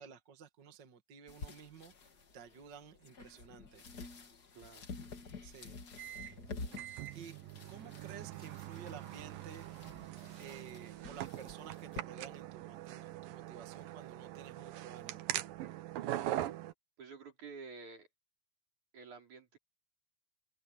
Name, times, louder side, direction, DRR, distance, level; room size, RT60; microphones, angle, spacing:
voice 1, 0.0-1.9 2.3-3.9 5.4-5.8 7.1-7.4 7.7-9.7 10.4-15.3, right 7 dB, 40° right, 1.9 m, -52 dB
sound 1, 1.3-12.0, left 4 dB, 40° left, 1.7 m, -50 dB
voice 2, 4.5-4.9 17.0-18.1 18.9-19.6, right 4 dB, 60° right, 6.3 m, -50 dB
sound 2, 6.0-16.7, right 14 dB, 85° right, 2.7 m, -42 dB
omnidirectional pair, 3.9 m